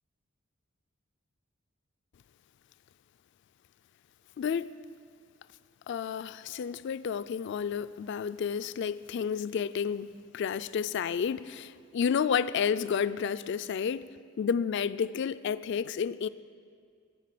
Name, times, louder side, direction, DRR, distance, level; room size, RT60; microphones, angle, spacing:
voice 1, 4.4-4.7 5.9-14.1 14.4-16.3, left 7 dB, 60° left, 14 dB, 0.3 m, -31 dB
19.5 x 6.6 x 7.6 m, 2.1 s
head